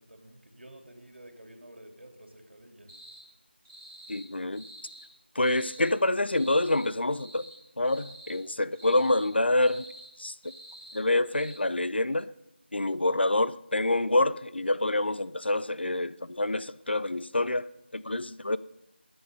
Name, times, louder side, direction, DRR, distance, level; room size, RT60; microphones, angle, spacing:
voice 1, 0.0-2.9, right 1 dB, 80° right, 3.2 m, -51 dB
sound 1, 2.9-3.2 3.6-4.3 4.5-5.1 5.4-5.9 6.3-6.9 7.1-7.6 7.8-8.4 8.7-9.3 9.6-10.1 10.4-11.0 11.3-11.6, right 1 dB, 20° right, 5.4 m, -48 dB
voice 2, 4.1-4.7 5.4-7.4 7.8-9.8 10.2-10.3 10.9-12.3 12.7-18.6, left 2 dB, 65° left, 0.6 m, -27 dB
22.0 x 8.1 x 5.5 m
figure-of-eight pair, 180°, 6 cm